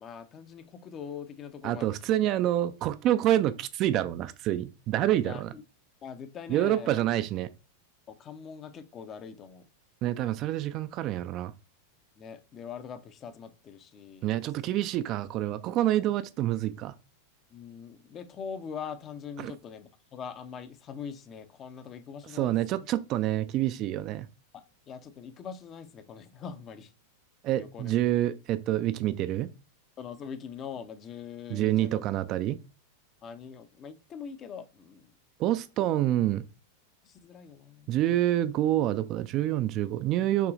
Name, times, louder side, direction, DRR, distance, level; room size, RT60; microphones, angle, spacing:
voice 1, 0.0-2.0 5.2-5.6 6.0-7.0 8.1-9.7 12.2-14.3 17.5-22.9 24.9-26.9 27.5-27.9 30.0-32.0 33.2-35.1 37.0-38.0, left 7 dB, 30° left, 0.5 m, -42 dB
voice 2, 1.6-5.5 6.5-7.5 10.0-11.5 14.2-16.9 19.4-19.5 22.3-24.3 27.4-29.5 31.5-32.6 35.4-36.4 37.9-40.5, right 13 dB, 35° right, 0.3 m, -27 dB
5.9 x 3.0 x 2.5 m
figure-of-eight pair, 90°, 0 cm